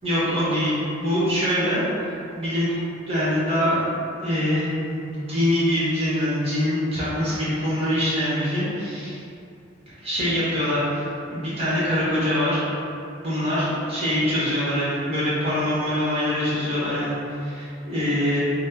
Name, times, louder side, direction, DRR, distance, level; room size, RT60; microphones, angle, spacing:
voice 1, 0.0-1.8 2.4-2.7 3.1-3.9 4.2-9.2 10.0-12.6 13.2-17.1 17.4-18.4, equal, 30° right, -10 dB, 1.4 m, -24 dB
6.1 x 2.2 x 2.9 m, 2.6 s
head